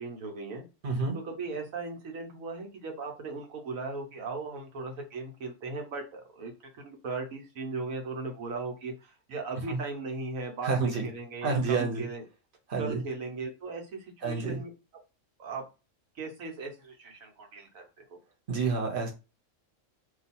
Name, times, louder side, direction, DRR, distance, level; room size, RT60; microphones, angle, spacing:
voice 1, 0.0-0.6 1.2-12.2 12.8-14.7 15.4-15.6 16.1-17.8 18.1-18.2, right 3 dB, 90° right, 2 dB, 1.3 m, -38 dB
voice 2, 0.8-1.2 9.7-9.8 10.6-11.1 11.4-12.1 12.7-13.0 14.2-14.6 18.5-19.1, right 4 dB, 45° right, 0 dB, 1.0 m, -29 dB
2.8 x 2.4 x 4.1 m, 0.30 s
omnidirectional pair, 1.4 m